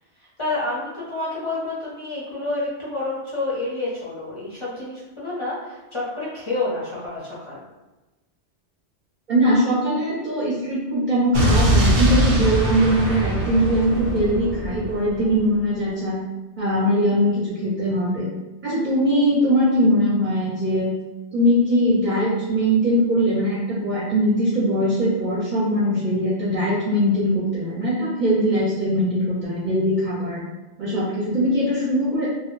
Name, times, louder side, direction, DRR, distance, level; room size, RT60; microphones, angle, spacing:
voice 1, 0.2-7.6, left 2 dB, 40° left, -8 dB, 0.5 m, -29 dB
voice 2, 9.3-16.2 16.6-18.3 18.6-20.9 21.3-30.4 30.8-32.3, equal, 55° right, -8 dB, 0.6 m, -21 dB
Explosion, 11.3-15.4, right 1 dB, 85° right, 0.9 m, -22 dB
2.1 x 2.0 x 2.9 m, 1.1 s
omnidirectional pair, 1.1 m